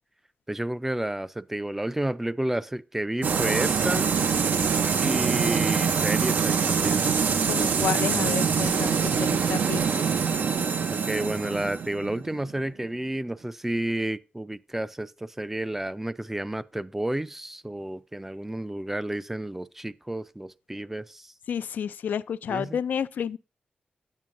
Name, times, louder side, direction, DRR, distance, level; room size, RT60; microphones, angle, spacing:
voice 1, 0.5-4.1 5.0-7.1 7.5-8.2 10.9-21.3 22.5-22.8, right 1 dB, 10° right, 0.4 m, -31 dB
sound 1, 3.2-12.8, right 6 dB, 85° right, 0.6 m, -24 dB
voice 2, 7.5-10.1 21.5-23.4, left 8 dB, 90° left, 0.3 m, -30 dB
9.3 x 9.0 x 2.5 m
wide cardioid pair, 120°, 3 cm